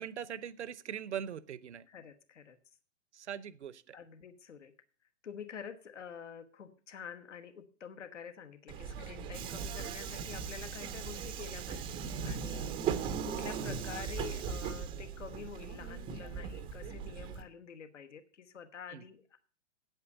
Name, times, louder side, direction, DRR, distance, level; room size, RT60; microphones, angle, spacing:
voice 1, 0.0-1.9 3.1-4.0 18.9-19.0, right 9 dB, 65° right, 20 dB, 0.8 m, -41 dB
voice 2, 1.9-2.6 3.9-4.7 5.2-19.4, left 7 dB, 70° left, 9 dB, 1.2 m, -48 dB
Subway metro underground, 8.7-17.4, right 7 dB, 15° right, 0.5 m, -38 dB
8.6 x 8.3 x 6.6 m, 0.41 s
figure-of-eight pair, 115°, 38 cm